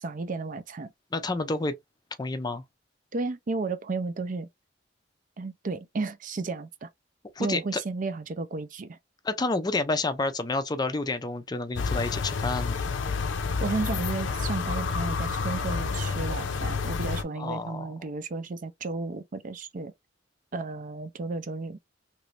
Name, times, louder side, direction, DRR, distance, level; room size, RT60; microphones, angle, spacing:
voice 1, 0.0-0.9 3.1-4.5 5.4-6.9 7.4-9.0 13.6-19.9 20.5-21.8, right 3 dB, 45° right, 0.5 m, -33 dB
voice 2, 1.1-1.7 2.2-2.6 7.4-7.8 9.2-12.8 17.4-17.9, left 2 dB, 20° left, 0.5 m, -29 dB
sound 1, 11.8-17.2, left 4 dB, 80° left, 0.6 m, -29 dB
3.0 x 2.5 x 3.1 m
head